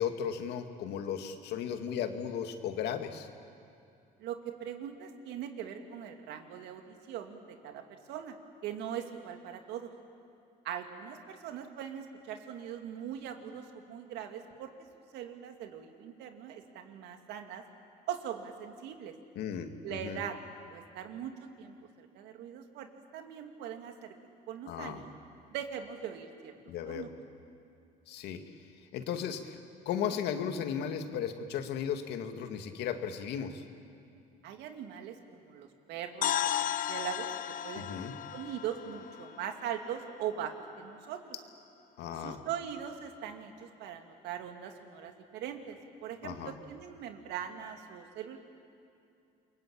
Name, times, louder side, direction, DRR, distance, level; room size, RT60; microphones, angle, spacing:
voice 1, 0.0-3.3 19.4-20.2 24.7-25.0 26.7-27.1 28.1-28.4 28.9-29.6 29.9-33.6 37.7-38.1 42.0-42.4 46.2-46.5, left 8 dB, 80° left, 7 dB, 2.1 m, -35 dB
voice 2, 4.2-8.3 8.6-9.9 10.6-17.6 18.1-19.1 19.8-20.3 20.7-22.9 23.1-24.1 24.5-25.1 25.5-26.5 26.9-27.1 34.4-37.3 37.6-41.4 42.1-45.8 46.0-48.4, right 9 dB, 85° right, 5 dB, 2.4 m, -41 dB
sound 1, 36.2-40.2, left 11 dB, 55° left, 0.8 m, -35 dB
28.5 x 22.5 x 8.8 m, 2.5 s
cardioid pair, 110°, 17 cm